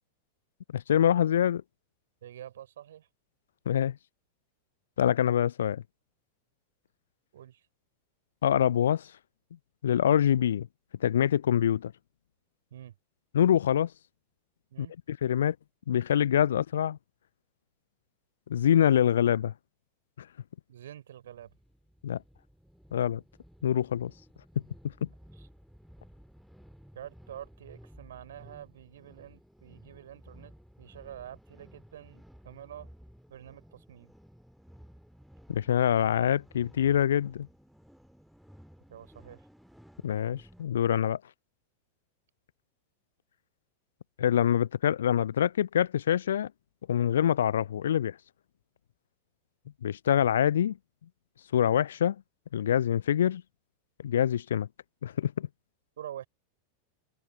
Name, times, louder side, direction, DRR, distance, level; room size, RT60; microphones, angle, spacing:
voice 1, 0.7-1.6 3.7-4.0 5.0-5.8 8.4-9.1 9.8-10.7 11.0-11.9 13.3-13.9 14.8-15.6 15.9-17.0 18.5-19.5 20.2-20.3 22.0-22.2 22.9-23.2 23.6-24.1 25.0-25.1 35.5-37.5 40.0-41.2 44.2-46.5 46.9-48.2 49.8-50.8 51.5-52.2 52.5-53.4 54.0-54.7 55.0-55.5, left 10 dB, 65° left, 0.3 m, -25 dB
voice 2, 2.2-3.1 7.3-7.6 12.7-12.9 14.7-14.9 16.5-16.6 20.7-21.5 25.4-25.5 26.9-32.9 33.3-34.1 38.9-39.4 56.0-56.3, right 11 dB, 60° right, 4.1 m, -47 dB
sound 1, 21.3-40.7, equal, ahead, 1.9 m, -55 dB
open air
figure-of-eight pair, 90°, 0 cm